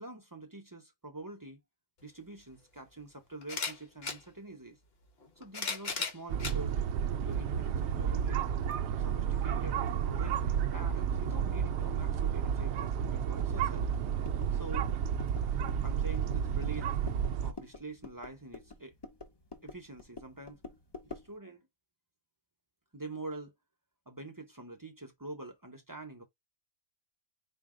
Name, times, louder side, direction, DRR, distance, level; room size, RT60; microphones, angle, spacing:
voice 1, 0.0-1.6 2.0-4.8 5.4-6.8 7.2-8.5 9.0-13.9 14.5-14.9 15.8-17.0 17.4-18.9 19.6-20.6 21.0-21.6 22.9-23.5 24.1-26.2, right 2 dB, 25° right, 0.4 m, -45 dB
sound 1, 2.0-2.1 3.4-4.2 5.2-6.6 7.3-7.4 8.7-8.8, left 4 dB, 45° left, 1.1 m, -36 dB
sound 2, 6.3-17.5, right 8 dB, 65° right, 0.6 m, -31 dB
sound 3, 13.7-21.4, left 4 dB, 30° left, 0.5 m, -49 dB
4.6 x 2.1 x 3.6 m
omnidirectional pair, 1.5 m